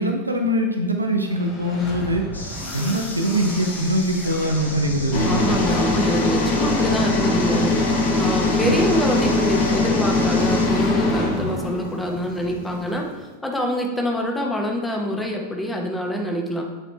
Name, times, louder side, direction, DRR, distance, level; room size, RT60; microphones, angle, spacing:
voice 1, 0.0-2.2 2.7-5.5, equal, 85° right, 2 dB, 0.7 m, -22 dB
sound 1, 1.1-7.4, left 1 dB, 30° left, 1.6 m, -36 dB
sound 2, 2.3-10.7, left 2 dB, 80° left, 0.8 m, -37 dB
sound 3, 5.1-13.1, left 2 dB, 45° left, 1.3 m, -21 dB
voice 2, 5.3-16.6, equal, 5° left, 1 dB, 1.1 m, -26 dB
7.9 x 4.3 x 3.3 m, 1.2 s
figure-of-eight pair, 90°, 0 cm